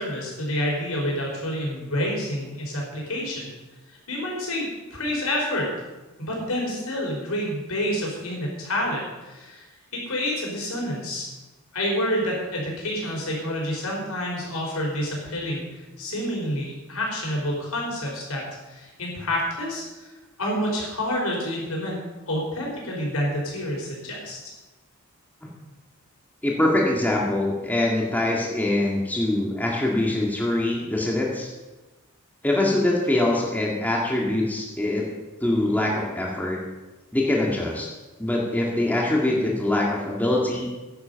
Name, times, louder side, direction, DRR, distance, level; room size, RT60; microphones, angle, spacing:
voice 1, 0.0-3.5 3.9-4.6 4.9-5.7 6.2-9.6 9.9-11.3 11.7-20.1 20.4-22.0 22.3-24.4, left 1 dB, 85° left, -2 dB, 5.0 m, -28 dB
voice 2, 26.4-31.5 32.4-35.1 35.4-36.6 37.1-37.9 38.2-40.7, left 1 dB, 10° left, -3 dB, 1.9 m, -23 dB
10.5 x 10.0 x 6.9 m, 1.2 s
head